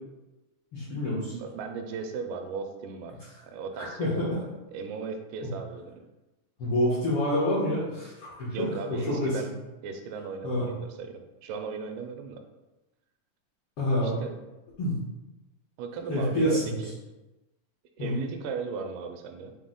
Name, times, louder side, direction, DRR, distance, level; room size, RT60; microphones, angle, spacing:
voice 1, 0.7-1.3 3.8-4.2 6.6-9.4 10.4-10.7 13.8-14.1 14.8-15.0 16.1-16.6 18.0-18.1, left 1 dB, 70° left, -8 dB, 1.3 m, -27 dB
voice 2, 1.2-3.1 3.4-4.3 4.7-6.0 8.5-9.5 9.8-12.4 14.0-14.4 15.8-16.9 18.0-19.6, right 5 dB, 85° right, 5 dB, 2.1 m, -36 dB
6.0 x 2.0 x 3.6 m, 1.0 s
omnidirectional pair, 3.7 m